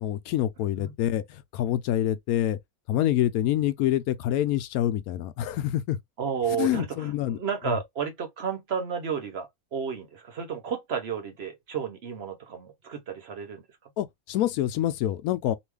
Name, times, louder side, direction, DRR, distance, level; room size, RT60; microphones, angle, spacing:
voice 1, 0.0-2.6 2.9-6.0 6.6-7.4 7.7-7.8 14.0-15.6, left 12 dB, 80° left, 1.0 m, -26 dB
voice 2, 6.2-13.9, right 7 dB, 50° right, 1.0 m, -32 dB
3.1 x 2.2 x 3.3 m
omnidirectional pair, 1.5 m